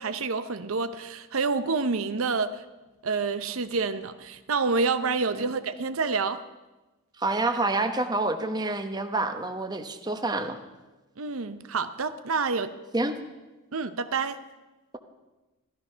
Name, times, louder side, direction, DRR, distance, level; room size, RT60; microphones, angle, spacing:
voice 1, 0.0-2.6 3.0-6.4 11.2-12.7 13.7-14.4, right 4 dB, 75° right, 0.7 m, -28 dB
voice 2, 7.2-10.6 12.9-13.1, right 2 dB, 20° right, 1.0 m, -28 dB
15.0 x 13.5 x 5.7 m
head